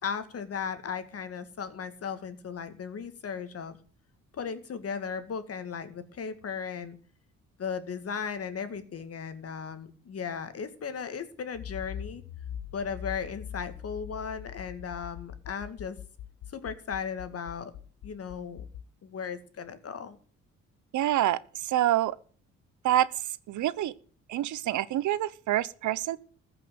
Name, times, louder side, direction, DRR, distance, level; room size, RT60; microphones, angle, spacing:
voice 1, 0.0-3.8 4.3-7.0 7.6-12.2 12.7-16.0 16.5-17.7 18.0-18.6 19.0-20.2, left 6 dB, 50° left, 2.1 m, -36 dB
Accelerating revving vroom, 11.5-18.8, left 9 dB, 80° left, 1.0 m, -42 dB
voice 2, 20.9-22.1 22.8-23.1 23.5-23.9 24.3-26.2, right 13 dB, 75° right, 0.9 m, -26 dB
14.5 x 6.0 x 9.4 m
cardioid pair, 90°, 30 cm